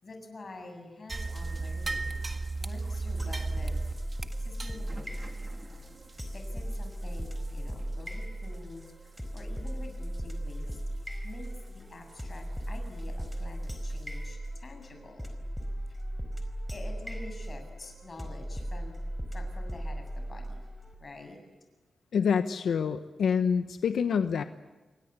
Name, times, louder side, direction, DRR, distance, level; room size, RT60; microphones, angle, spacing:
voice 1, 0.0-3.8 4.4-5.5 6.3-10.8 11.2-15.3 15.9-16.0 16.7-19.0 19.3-20.6 21.0-21.4, left 2 dB, 35° left, 5 dB, 7.7 m, -47 dB
sound 1, 1.1-7.7 8.0-8.1 8.7-8.9 9.4-9.7 10.0-10.1 10.7-10.8 13.2-13.3 13.9-14.0, right 3 dB, 25° right, 1.8 m, -36 dB
sound 2, 3.2-20.9, equal, 5° left, 4.5 m, -37 dB
voice 2, 22.1-24.4, left 6 dB, 80° left, 9 dB, 1.1 m, -27 dB
28.5 x 23.5 x 8.3 m, 1.3 s
wide cardioid pair, 140°, 0 cm